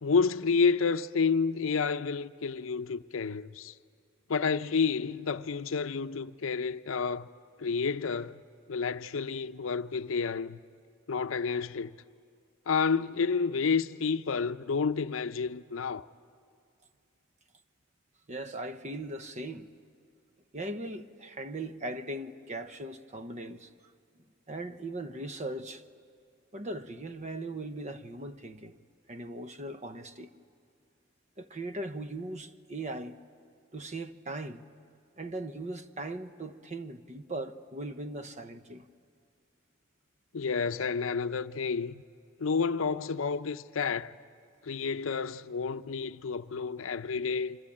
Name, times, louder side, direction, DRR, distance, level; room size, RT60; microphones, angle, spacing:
voice 1, 0.0-3.7 4.3-7.3 7.6-8.4 8.7-10.6 11.1-11.9 12.7-16.1 40.3-42.0 42.4-44.1 44.6-47.6, left 5 dB, 75° left, 0.6 m, -30 dB
voice 2, 18.3-19.7 20.5-23.7 24.5-25.8 26.5-28.8 29.1-30.3 31.4-33.1 33.7-34.7 35.2-38.9, right 2 dB, 35° right, 0.9 m, -39 dB
26.5 x 25.5 x 8.7 m
head